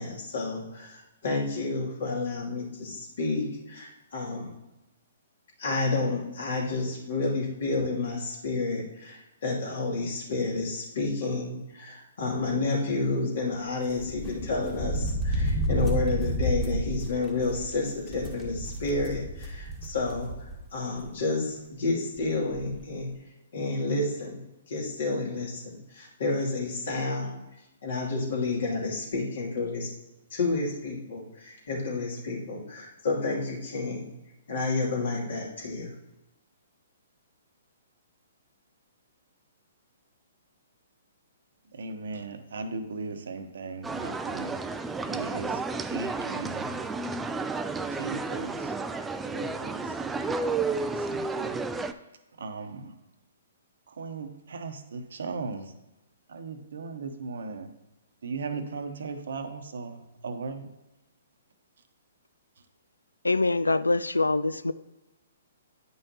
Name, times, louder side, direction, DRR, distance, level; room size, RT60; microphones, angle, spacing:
voice 1, 0.0-4.5 5.6-20.3 20.7-23.1 23.5-24.4 24.7-27.4 27.8-29.9 30.3-34.1 34.5-35.9, left 3 dB, 60° left, -3 dB, 2.6 m, -30 dB
sound 1, 13.9-20.6 21.0-21.1 22.2-22.3 22.5-22.8, right 1 dB, 20° left, 1.7 m, -31 dB
voice 2, 41.7-44.6 45.1-45.6 45.9-46.7 48.0-48.7 49.2-49.8 50.7-51.6 52.4-52.9 53.9-55.7 56.3-57.7 58.2-60.7, right 4 dB, 65° right, 7 dB, 0.9 m, -37 dB
sound 2, 43.8-51.9, right 3 dB, 10° right, 0.4 m, -32 dB
voice 3, 63.2-64.7, left 2 dB, 90° left, 14 dB, 0.4 m, -24 dB
9.6 x 5.5 x 2.9 m, 0.99 s
figure-of-eight pair, 125°, 0 cm